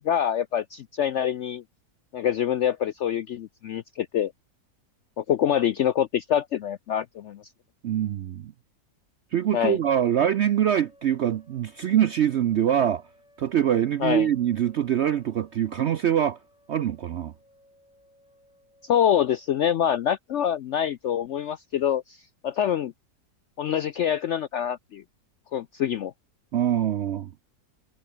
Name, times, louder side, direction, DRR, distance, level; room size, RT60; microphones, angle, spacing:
voice 1, 0.0-1.6 2.1-4.3 5.2-7.4 9.5-9.8 14.0-14.3 18.8-22.2 22.4-22.9 23.6-25.0 25.5-26.1, left 9 dB, 70° left, 0.7 m, -25 dB
voice 2, 7.8-8.5 9.3-13.0 13.4-16.4 16.7-17.3 26.5-27.3, right 10 dB, 70° right, 0.6 m, -24 dB
sound 1, 10.5-19.5, left 1 dB, 15° left, 6.4 m, -60 dB
omnidirectional pair, 1.8 m